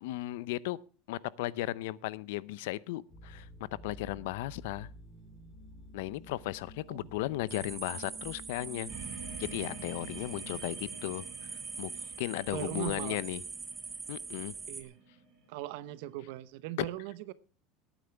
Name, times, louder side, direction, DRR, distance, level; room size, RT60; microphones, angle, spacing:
voice 1, 0.0-0.8 1.1-3.5 3.8-4.9 5.9-8.9 9.4-11.2 11.8-11.9 12.2-13.4 14.1-14.5, left 17 dB, 75° left, 0.6 m, -36 dB
sound 1, 3.1-10.6, right 1 dB, 20° left, 4.2 m, -51 dB
sound 2, 7.5-14.8, right 5 dB, 15° right, 1.0 m, -43 dB
sound 3, 8.9-16.1, right 5 dB, 40° right, 7.7 m, -49 dB
voice 2, 12.5-13.2 14.7-15.0 15.5-17.3, right 15 dB, 60° right, 0.8 m, -39 dB
18.5 x 9.2 x 3.4 m
cardioid pair, 175°, 0 cm